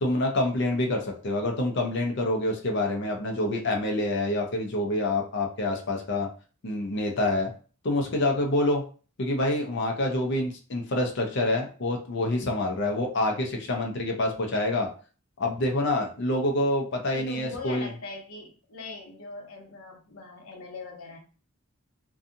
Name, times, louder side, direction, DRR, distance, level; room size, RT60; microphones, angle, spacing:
voice 1, 0.0-6.3 6.6-7.5 7.8-8.8 9.2-14.9 15.4-17.9, left 1 dB, 55° left, 2 dB, 0.6 m, -27 dB
voice 2, 17.1-21.2, left 3 dB, 85° left, 2 dB, 0.8 m, -41 dB
2.6 x 2.3 x 2.5 m, 0.37 s
head